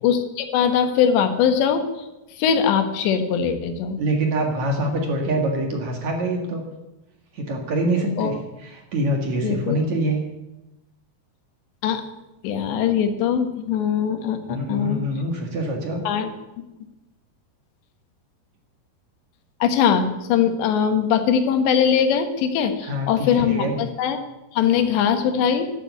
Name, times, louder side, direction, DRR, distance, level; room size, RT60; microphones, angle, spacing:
voice 1, 0.0-1.9 2.4-4.0 8.2-8.3 9.4-9.8 11.8-12.0 12.4-15.0 16.1-16.3 19.6-24.2 24.5-25.7, left 8 dB, 90° left, 7 dB, 3.6 m, -21 dB
voice 2, 4.0-6.6 7.3-10.2 14.5-16.0 22.8-23.7, right 1 dB, 50° right, 2 dB, 2.7 m, -25 dB
12.5 x 12.0 x 8.4 m, 0.99 s
omnidirectional pair, 4.9 m